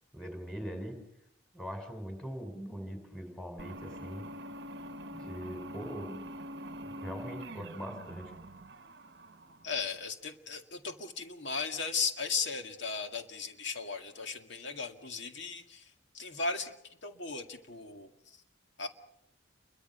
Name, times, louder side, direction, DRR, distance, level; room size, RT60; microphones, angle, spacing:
voice 1, 0.1-1.0 1.5-4.2 5.1-8.3, equal, 5° left, 5 dB, 4.6 m, -42 dB
sound 1, 3.6-10.0, equal, 60° right, 0.9 m, -45 dB
voice 2, 9.6-16.7 17.0-18.4 18.8-18.9, left 4 dB, 65° left, 5 dB, 2.1 m, -36 dB
29.5 x 23.5 x 5.6 m, 0.77 s
head